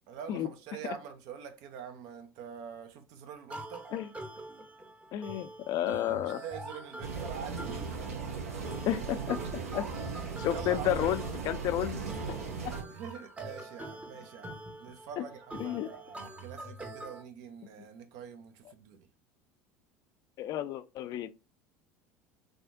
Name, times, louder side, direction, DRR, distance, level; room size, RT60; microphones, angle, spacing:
voice 1, 0.1-3.9 6.1-8.2 10.5-11.1 12.8-19.1, right 7 dB, 60° right, 0.6 m, -45 dB
sound 1, 3.5-17.2, right 2 dB, 15° right, 0.7 m, -45 dB
voice 2, 5.1-6.4 8.9-9.9 10.4-12.0 15.2-15.3 15.6-15.9 20.4-21.3, left 12 dB, 50° left, 0.4 m, -32 dB
sound 2, 7.0-12.8, right 5 dB, 85° right, 1.0 m, -37 dB
3.5 x 2.3 x 2.5 m
hypercardioid pair, 75°, 8 cm